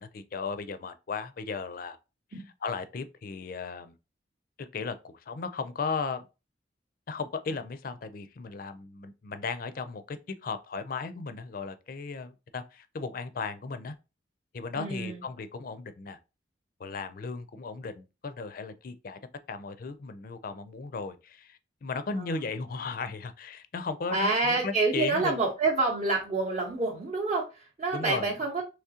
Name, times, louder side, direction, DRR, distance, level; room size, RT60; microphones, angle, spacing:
voice 1, 0.0-2.0 2.6-3.9 4.6-6.3 7.1-13.9 14.5-16.2 16.8-19.2 19.5-25.4 27.9-28.3, left 4 dB, 50° left, 0.4 m, -36 dB
voice 2, 14.8-15.2 22.2-22.4 24.1-28.6, right 3 dB, 40° right, 0.7 m, -28 dB
3.6 x 3.0 x 2.8 m
head